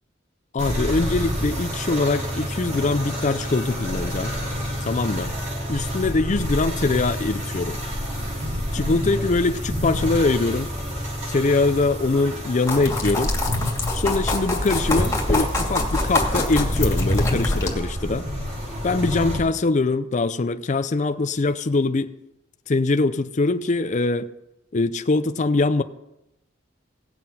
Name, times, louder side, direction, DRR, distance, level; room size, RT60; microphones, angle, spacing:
voice 1, 0.5-4.3 4.9-5.3 5.7-7.8 8.7-10.7 11.3-13.3 13.9-18.3 18.8-22.2 22.7-24.3 24.7-25.8, left 3 dB, 40° left, 0.5 m, -23 dB
sound 1, 0.6-19.4, equal, 40° right, 4.7 m, -29 dB
sound 2, 12.7-17.7, left 1 dB, 15° left, 2.5 m, -24 dB
17.5 x 7.6 x 5.7 m
head